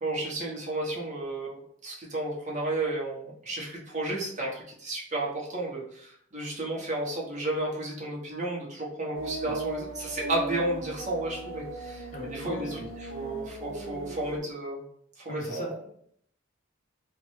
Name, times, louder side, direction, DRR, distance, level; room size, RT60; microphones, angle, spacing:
voice 1, 0.0-12.8 13.1-14.8 15.2-15.8, right 2 dB, 40° right, -3 dB, 0.9 m, -32 dB
sound 1, 9.1-14.4, right 2 dB, 90° right, 0.5 m, -38 dB
voice 2, 12.1-13.4 15.3-15.9, left 1 dB, 40° left, -1 dB, 0.6 m, -40 dB
3.3 x 2.1 x 3.1 m, 0.66 s
head